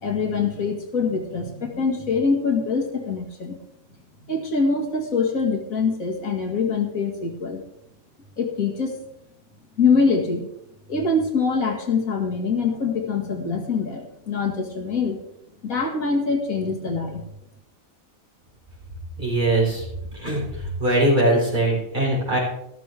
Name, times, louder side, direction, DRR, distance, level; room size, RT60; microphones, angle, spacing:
voice 1, 0.0-3.6 4.3-7.6 8.4-9.0 9.8-10.5 10.9-15.2 15.6-17.2, left 4 dB, 75° left, 2 dB, 2.2 m, -24 dB
voice 2, 19.2-19.8 20.1-22.4, right 1 dB, 35° right, -5 dB, 5.1 m, -21 dB
13.5 x 13.0 x 3.4 m, 0.80 s
omnidirectional pair, 1.5 m